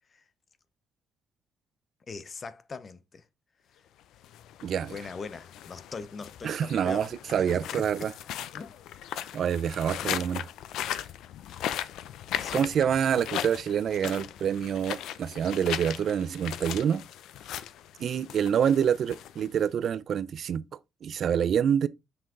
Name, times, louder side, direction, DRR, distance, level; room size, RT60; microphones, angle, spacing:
voice 1, 2.1-3.3 4.9-8.1 8.5-8.7 11.5-11.6 12.3-12.7, left 4 dB, 30° left, 0.8 m, -41 dB
sound 1, 4.1-19.8, left 11 dB, 80° left, 0.6 m, -38 dB
voice 2, 4.6-4.9 6.4-8.1 9.3-10.4 12.5-17.0 18.0-20.6 21.0-21.9, right 8 dB, 50° right, 0.5 m, -27 dB
7.7 x 5.8 x 3.8 m
cardioid pair, 140°, 0 cm